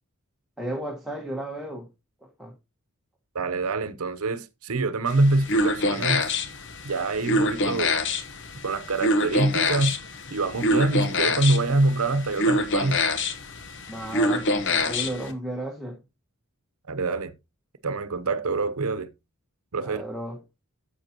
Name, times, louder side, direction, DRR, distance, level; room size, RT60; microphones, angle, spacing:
voice 1, 0.6-1.9 2.2-2.5 13.9-16.0 19.8-20.4, right 1 dB, ahead, 1.4 m, -34 dB
voice 2, 3.3-6.3 6.8-8.0 8.6-10.0 10.3-13.0 16.9-17.3 17.8-19.1 19.7-20.0, right 2 dB, 85° right, 0.8 m, -25 dB
sound 1, 5.1-15.3, left 2 dB, 60° left, 1.1 m, -26 dB
10.5 x 7.0 x 2.9 m
head